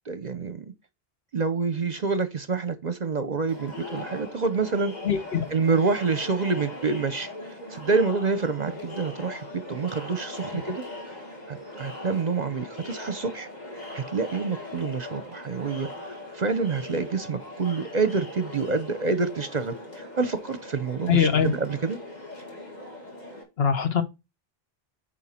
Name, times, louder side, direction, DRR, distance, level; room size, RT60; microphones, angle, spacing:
voice 1, 0.1-0.6 1.3-4.9 5.5-10.8 11.5-13.5 13.9-22.0, right 4 dB, 50° right, 0.7 m, -27 dB
Crowd, 3.5-23.4, left 1 dB, 45° left, 2.2 m, -40 dB
voice 2, 5.0-5.4 21.1-21.5 23.6-24.0, left 7 dB, 75° left, 1.3 m, -22 dB
9.0 x 4.5 x 4.2 m
omnidirectional pair, 1.0 m